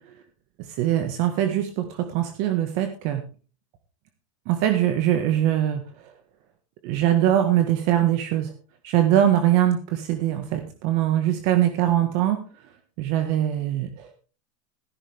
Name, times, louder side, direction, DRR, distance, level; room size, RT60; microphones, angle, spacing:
voice 1, 0.7-3.2 4.5-5.8 6.8-8.5 8.8-12.4 13.0-14.1, right 11 dB, 45° right, 6 dB, 1.6 m, -22 dB
14.5 x 12.5 x 3.6 m, 0.36 s
supercardioid pair, 160°, 17 cm